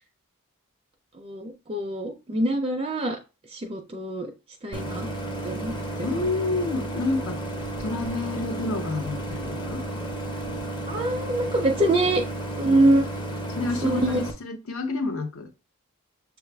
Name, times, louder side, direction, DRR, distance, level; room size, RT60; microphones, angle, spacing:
voice 1, 1.1-3.2 3.5-4.3 4.6-5.1 5.4-5.7 6.0-6.2 10.9-12.2 12.6-13.0 13.8-14.2, right 1 dB, 25° right, 0.4 m, -24 dB
Idling, 4.7-14.3, right 1 dB, 20° left, 0.6 m, -32 dB
voice 2, 6.0-7.4 7.8-9.8 12.6-12.9 13.5-15.5, left 3 dB, 65° left, 0.7 m, -29 dB
6.7 x 2.3 x 3.3 m
head